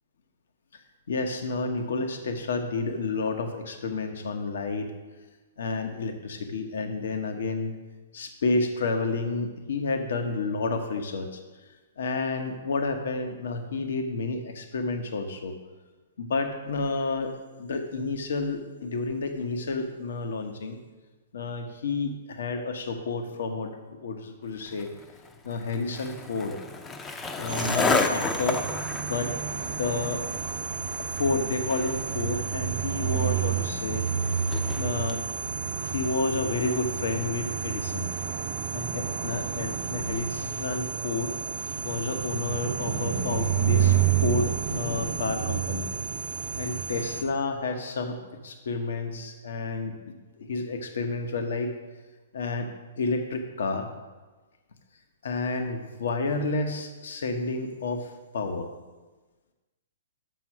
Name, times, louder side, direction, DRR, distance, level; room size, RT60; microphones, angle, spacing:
voice 1, 1.1-4.9 5.6-7.7 8.1-11.4 12.0-15.5 16.2-20.8 21.3-24.9 25.4-26.6 27.3-28.6 29.1-29.3 29.8-30.2 31.0-34.1 34.7-35.2 35.8-38.1 38.7-41.3 41.8-45.9 46.6-48.2 48.4-50.0 50.4-51.7 52.3-54.0 55.2-58.7, left 3 dB, 75° left, 6 dB, 0.9 m, -30 dB
Skateboard, 24.7-35.2, left 4 dB, 15° left, 0.6 m, -33 dB
sound 1, 27.5-47.2, right 7 dB, 50° right, 0.8 m, -30 dB
6.1 x 6.1 x 6.0 m, 1.2 s
hypercardioid pair, 130°, 0 cm